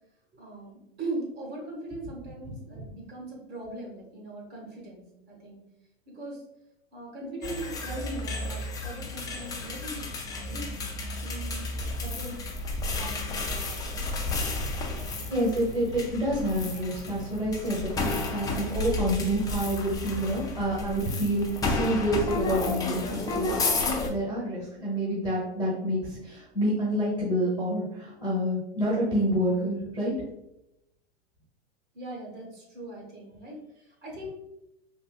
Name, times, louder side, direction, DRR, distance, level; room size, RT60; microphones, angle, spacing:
voice 1, 0.4-5.6 6.1-6.4 6.9-10.8 11.2-12.4 13.0-14.1 14.9-15.3 31.9-34.3, right 2 dB, 35° right, -2 dB, 1.2 m, -40 dB
sound 1, 7.4-24.1, left 2 dB, 10° left, 0.4 m, -32 dB
voice 2, 15.3-23.6 24.1-30.1, right 1 dB, 15° right, -6 dB, 1.0 m, -28 dB
3.7 x 2.6 x 2.4 m, 0.86 s
hypercardioid pair, 115°, 33 cm